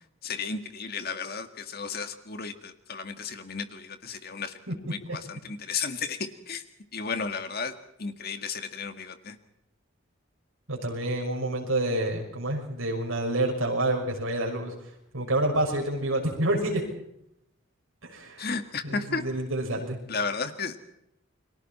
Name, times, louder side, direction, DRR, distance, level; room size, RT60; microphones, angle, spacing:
voice 1, 0.2-4.6 4.9-6.6 6.9-7.7 8.0-9.4 18.4-19.2 20.1-20.8, left 5 dB, 45° left, 8 dB, 1.9 m, -33 dB
voice 2, 10.7-14.7 15.1-16.8 18.0-18.5 18.8-20.0, right 1 dB, 75° right, 2 dB, 6.3 m, -28 dB
30.0 x 23.0 x 4.4 m, 0.79 s
head